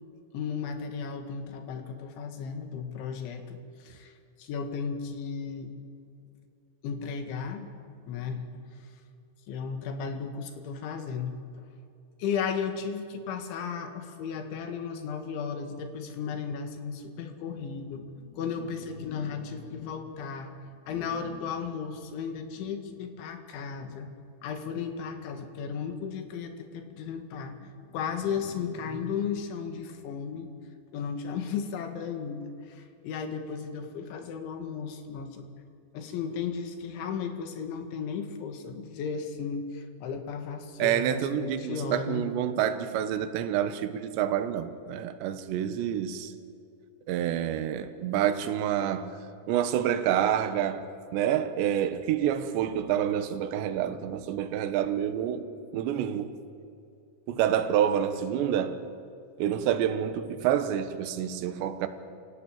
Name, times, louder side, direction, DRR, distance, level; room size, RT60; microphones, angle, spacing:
voice 1, 0.3-5.7 6.8-7.7 8.1-8.4 9.5-11.7 12.2-20.5 20.9-24.1 24.4-30.5 30.9-35.5 35.9-42.3, left 6 dB, 70° left, 4.2 m, -35 dB
voice 2, 40.8-46.3 47.1-49.1 49.5-50.8 51.1-55.4 55.7-56.3 57.3-58.8 59.4-61.9, right 10 dB, 70° right, 3.2 m, -28 dB
28.5 x 17.5 x 9.1 m
omnidirectional pair, 5.8 m